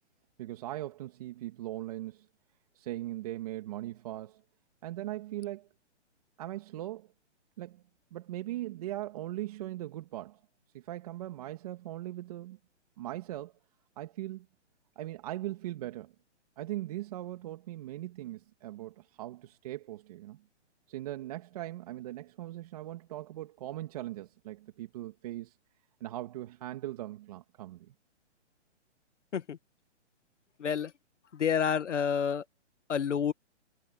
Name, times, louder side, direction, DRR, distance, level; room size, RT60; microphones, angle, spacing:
voice 1, 0.4-2.3 2.7-4.4 4.8-5.7 6.4-7.1 7.6-7.8 8.1-10.4 10.7-12.6 13.0-13.5 14.0-14.5 15.0-16.1 16.6-20.4 20.9-25.6 26.0-27.9, right 15 dB, 30° right, 2.0 m, -39 dB
voice 2, 30.6-30.9 31.3-32.4 32.9-33.3, left 7 dB, 80° left, 1.6 m, -29 dB
hypercardioid pair, 165°, 36 cm